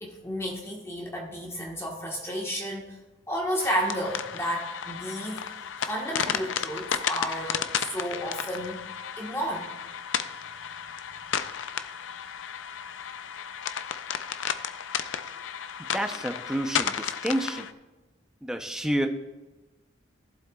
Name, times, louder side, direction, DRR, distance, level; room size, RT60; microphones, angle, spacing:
voice 1, 0.0-3.0 3.3-5.5 5.8-8.8 9.2-9.7, equal, 15° left, -1 dB, 1.4 m, -32 dB
sound 1, 3.6-17.7, left 8 dB, 80° left, 0.5 m, -33 dB
voice 2, 15.8-17.7 18.4-19.1, right 1 dB, 5° right, 5 dB, 0.7 m, -29 dB
15.0 x 7.8 x 2.4 m, 1.1 s
head